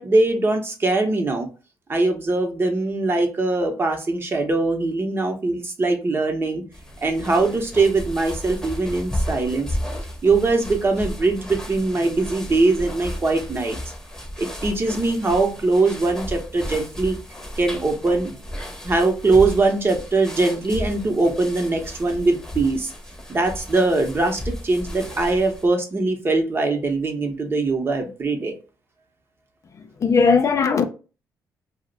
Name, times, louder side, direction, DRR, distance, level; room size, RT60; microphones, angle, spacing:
voice 1, 0.0-1.5 1.9-6.6 7.0-9.7 10.2-13.8 14.4-17.2 17.6-18.3 18.8-22.9 23.3-28.5, right 3 dB, 30° right, 0.8 m, -21 dB
sound 1, 6.7-25.7, equal, 10° left, 0.8 m, -34 dB
voice 2, 29.7-30.9, left 5 dB, 45° left, 0.4 m, -18 dB
2.5 x 2.1 x 3.8 m
cardioid pair, 75°, 7 cm